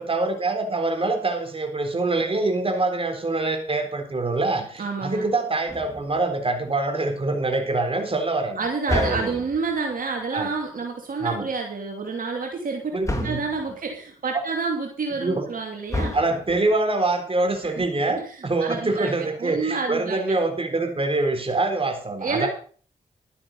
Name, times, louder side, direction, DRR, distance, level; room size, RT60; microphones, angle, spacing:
voice 1, 0.0-9.3 10.3-10.5 11.2-11.5 12.9-13.4 15.2-15.5 16.1-22.5, right 2 dB, 40° right, 6 dB, 3.9 m, -25 dB
voice 2, 4.8-5.2 8.6-12.9 13.2-16.2 17.6-20.3 22.2-22.5, right 4 dB, 65° right, 1 dB, 2.8 m, -29 dB
sound 1, 5.7-6.3 8.9-9.8 13.0-13.7 15.9-16.7, left 1 dB, 20° left, 3.9 m, -30 dB
12.5 x 9.9 x 5.4 m, 0.43 s
supercardioid pair, 40°, 15 cm